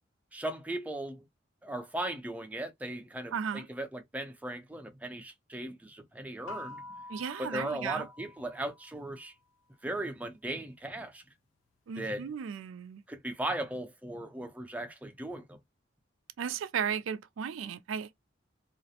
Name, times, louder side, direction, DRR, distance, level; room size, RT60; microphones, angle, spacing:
voice 1, 0.3-1.2 1.6-6.8 7.4-9.3 9.8-11.2 12.0-12.3 13.1-15.6, right 1 dB, 5° right, 0.4 m, -37 dB
voice 2, 3.3-3.7 7.1-8.1 11.9-13.0 16.4-18.1, right 7 dB, 85° right, 0.3 m, -35 dB
sound 1, 6.5-9.2, left 2 dB, 85° left, 0.3 m, -47 dB
2.4 x 2.0 x 2.7 m
head